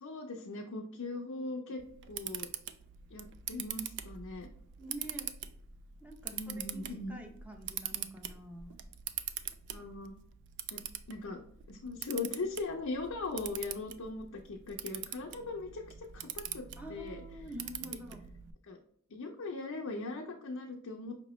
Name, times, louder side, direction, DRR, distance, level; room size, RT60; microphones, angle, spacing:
voice 1, 0.0-1.8 2.1-2.5 3.1-4.5 6.3-7.2 9.7-10.1 10.7-11.4 11.7-17.2 18.7-18.8 19.1-21.2, left 3 dB, 65° left, 0 dB, 0.5 m, -40 dB
Camera, 1.8-18.5, right 10 dB, 55° right, 0.3 m, -43 dB
voice 2, 4.8-5.3 6.0-8.8 16.8-18.3, right 1 dB, 5° right, 3 dB, 0.6 m, -47 dB
5.2 x 2.9 x 3.0 m, 0.68 s
head